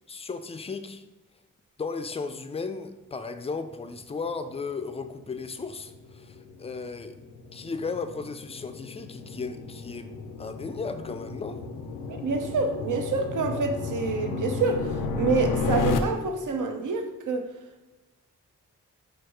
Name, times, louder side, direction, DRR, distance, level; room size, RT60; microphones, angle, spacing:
voice 1, 0.1-1.0 1.8-7.2 7.5-10.1 10.4-11.6, left 4 dB, 20° left, 0.3 m, -35 dB
Dark Piano Tension, 4.9-16.0, left 4 dB, 85° left, 0.5 m, -33 dB
voice 2, 12.2-17.5, right 4 dB, 75° right, 0.6 m, -27 dB
4.6 x 2.3 x 4.5 m
cardioid pair, 65°, 31 cm